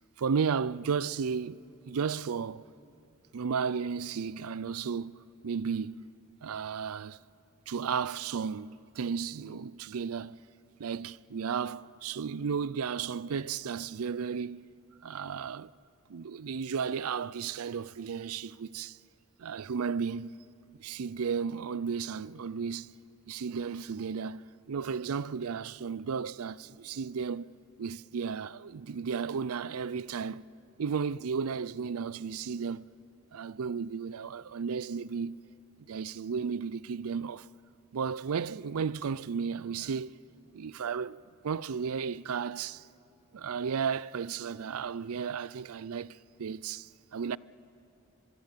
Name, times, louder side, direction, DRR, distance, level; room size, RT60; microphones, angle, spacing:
voice 1, 0.2-2.7 3.3-6.0 6.4-7.2 7.7-10.4 10.8-14.7 15.0-15.7 16.1-19.0 19.4-20.4 20.8-22.9 23.3-27.5 27.8-30.5 30.8-32.9 33.3-35.4 35.8-37.5 37.9-40.1 40.5-42.9 43.3-47.4, right 6 dB, 80° right, 0.5 m, -34 dB
25.0 x 23.0 x 7.4 m
head